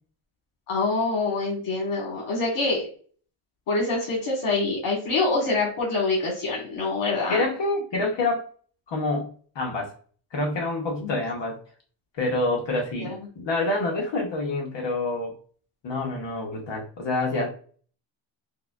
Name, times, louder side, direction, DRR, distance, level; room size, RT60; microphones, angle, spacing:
voice 1, 0.7-2.8 3.7-7.4 11.0-11.1 13.0-13.1, left 3 dB, 80° left, -2 dB, 1.4 m, -25 dB
voice 2, 7.3-8.5 8.9-9.3 9.5-9.9 10.3-11.6 12.2-15.4 15.8-17.5, left 2 dB, 60° left, -1 dB, 1.0 m, -27 dB
5.2 x 2.2 x 2.3 m, 0.44 s
wide cardioid pair, 155°, 50 cm